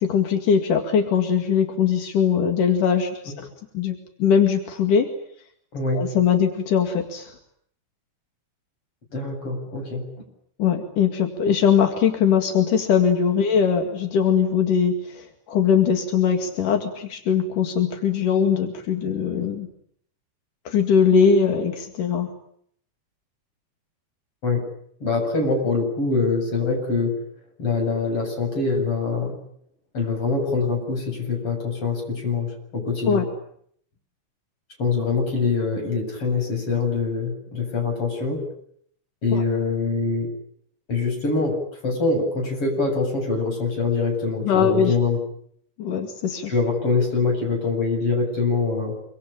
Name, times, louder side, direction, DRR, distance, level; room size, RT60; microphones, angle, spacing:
voice 1, 0.0-3.5 3.7-5.1 5.9-7.3 10.6-19.7 20.7-22.3 33.1-33.3 39.3-39.4 44.5-44.9 45.8-46.5, left 7 dB, 85° left, 4 dB, 3.8 m, -21 dB
voice 2, 5.7-6.0 9.1-10.0 24.4-24.7 25.0-27.2 27.6-29.4 29.9-33.2 34.8-38.5 39.2-40.3 40.9-45.2 46.5-48.9, left 4 dB, 45° left, 3 dB, 9.0 m, -24 dB
26.5 x 25.0 x 8.8 m, 0.67 s
omnidirectional pair, 3.6 m